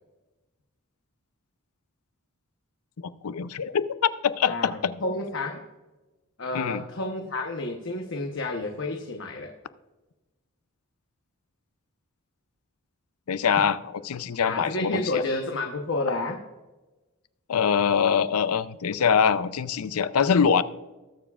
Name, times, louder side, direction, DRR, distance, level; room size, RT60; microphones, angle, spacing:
voice 1, 3.2-4.9 6.5-6.8 13.3-13.8 14.0-15.2 17.5-20.6, left 7 dB, 80° left, 15 dB, 0.5 m, -23 dB
voice 2, 4.4-5.6 6.4-9.5 14.4-16.4, left 2 dB, 55° left, 2 dB, 0.9 m, -30 dB
20.0 x 7.2 x 2.4 m, 1.1 s
head